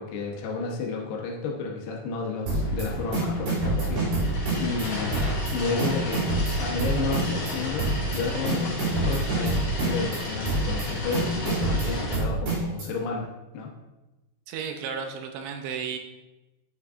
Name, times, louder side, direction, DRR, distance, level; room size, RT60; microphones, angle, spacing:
voice 1, 0.0-4.1 4.6-5.2 5.5-6.3 6.6-13.7, left 4 dB, 75° left, -1 dB, 3.0 m, -32 dB
sound 1, 2.5-12.2, left 2 dB, 45° left, 3.6 m, -32 dB
sound 2, 2.5-2.8 3.1-4.9 5.1-5.5 5.8-7.5 7.8-8.2 8.5-10.2 10.5-10.9 11.1-12.9, right 3 dB, 55° right, 4.1 m, -26 dB
voice 2, 14.5-16.0, right 6 dB, 80° right, 5 dB, 2.7 m, -33 dB
9.7 x 7.3 x 2.5 m, 1.0 s
omnidirectional pair, 4.9 m